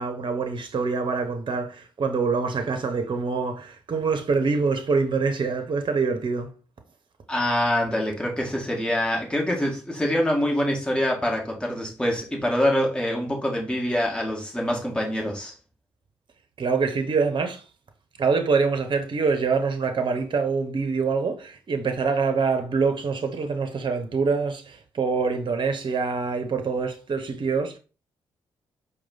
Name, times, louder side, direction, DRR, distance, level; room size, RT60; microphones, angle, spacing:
voice 1, 0.0-6.5 16.6-17.6 18.2-27.8, right 4 dB, 45° right, 0.8 m, -25 dB
voice 2, 7.3-15.5, left 1 dB, 10° left, 1.6 m, -25 dB
4.6 x 2.3 x 3.9 m
hypercardioid pair, 40°, 11 cm